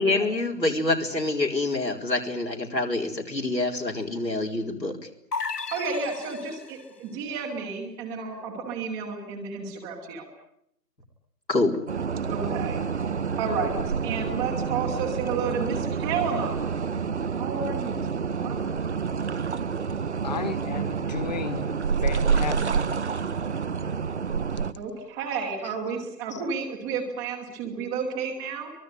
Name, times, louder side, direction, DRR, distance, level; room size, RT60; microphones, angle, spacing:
voice 1, 0.0-4.9 11.5-11.7, left 2 dB, 90° left, 2 dB, 4.3 m, -26 dB
sound 1, 5.3-6.9, left 5 dB, 70° left, 1.2 m, -34 dB
voice 2, 5.7-10.3 12.3-12.8 13.4-16.6 17.3-18.6 24.8-28.7, right 5 dB, 5° right, 1 dB, 1.1 m, -31 dB
sound 2, 11.9-24.7, right 6 dB, 45° right, 1.0 m, -28 dB
voice 3, 20.2-21.7 22.0-22.8, left 6 dB, 25° left, 11 dB, 1.6 m, -33 dB
23.5 x 22.0 x 9.4 m, 0.76 s
figure-of-eight pair, 145°, 49 cm